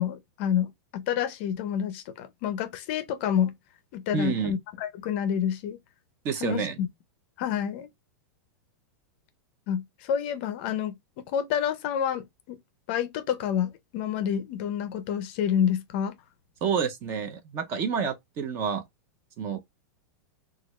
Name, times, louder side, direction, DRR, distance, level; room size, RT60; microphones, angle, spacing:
voice 1, 0.0-3.6 3.9-5.8 6.4-6.9 7.4-7.9 9.7-10.9 11.3-12.6 12.9-16.2, left 9 dB, 35° left, 0.5 m, -28 dB
voice 2, 4.1-4.5 6.2-6.8 16.6-18.8 19.4-19.6, right 6 dB, 25° right, 0.4 m, -28 dB
3.1 x 2.3 x 3.0 m
supercardioid pair, 170°, 10 cm